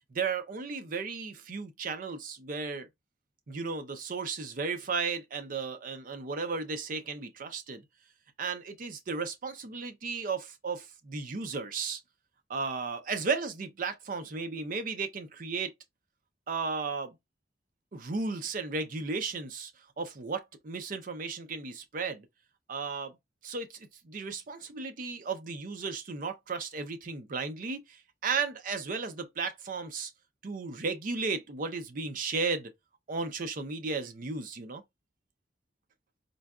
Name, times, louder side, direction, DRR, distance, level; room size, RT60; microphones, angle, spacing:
voice 1, 0.1-2.9 3.5-7.8 8.4-12.0 12.5-15.7 16.5-17.2 17.9-19.7 20.0-22.3 22.7-23.2 23.4-30.1 30.4-32.7 33.1-34.8, right 4 dB, 50° right, 0.5 m, -34 dB
3.9 x 2.2 x 2.3 m
head